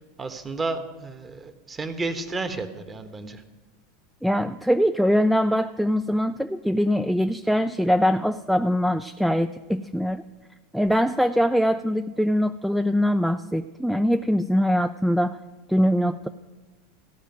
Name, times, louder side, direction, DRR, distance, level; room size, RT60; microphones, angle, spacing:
voice 1, 0.2-3.4, right 3 dB, 20° right, 9 dB, 1.2 m, -32 dB
voice 2, 4.2-10.2 10.7-15.4 15.7-16.3, equal, ahead, 8 dB, 0.4 m, -22 dB
14.5 x 5.0 x 9.1 m, 1.3 s
figure-of-eight pair, 85°, 0 cm